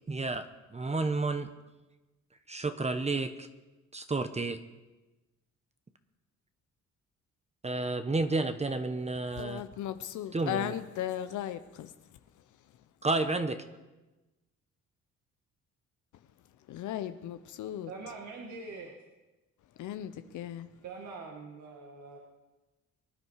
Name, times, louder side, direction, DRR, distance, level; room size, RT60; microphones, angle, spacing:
voice 1, 0.1-0.5 0.7-1.5 2.5-3.5 3.9-4.6 7.6-9.6 10.3-10.7 13.0-13.6, right 3 dB, 20° right, 9 dB, 1.0 m, -31 dB
voice 2, 9.3-11.9 16.7-17.9 19.8-20.7, left 11 dB, 75° left, 10 dB, 0.8 m, -36 dB
voice 3, 17.9-18.9 20.8-22.2, right 4 dB, 65° right, 0 dB, 2.0 m, -43 dB
24.0 x 9.8 x 4.8 m, 1.1 s
cardioid pair, 90°, 30 cm